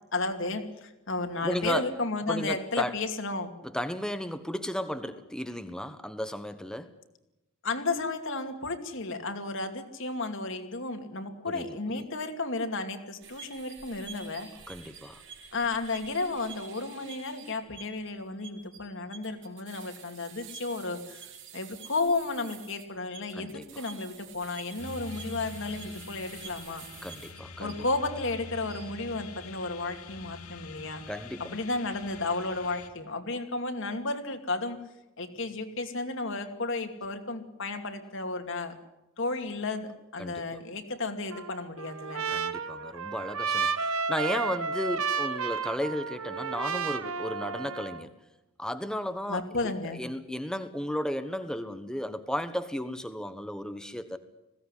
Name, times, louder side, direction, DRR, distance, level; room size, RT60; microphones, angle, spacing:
voice 1, 0.1-3.5 7.6-14.5 15.5-21.2 21.5-26.9 27.6-31.0 31.4-34.8 35.2-38.8 39.2-42.2 49.3-50.0, left 3 dB, 60° left, 6 dB, 2.5 m, -33 dB
voice 2, 1.4-1.9 2.3-3.0 3.6-6.9 11.4-12.0 14.7-15.2 23.3-23.6 27.0-27.8 31.1-31.6 40.2-40.6 42.3-48.1 48.6-54.2, equal, 5° left, 10 dB, 1.2 m, -34 dB
sound 1, 13.2-28.2 28.6-29.0, right 7 dB, 55° right, 4.1 m, -48 dB
sound 2, 24.8-32.9, left 4 dB, 85° left, 2.0 m, -45 dB
Trumpet, 41.3-48.0, right 5 dB, 75° right, 1.3 m, -32 dB
21.0 x 16.5 x 9.9 m, 0.95 s
head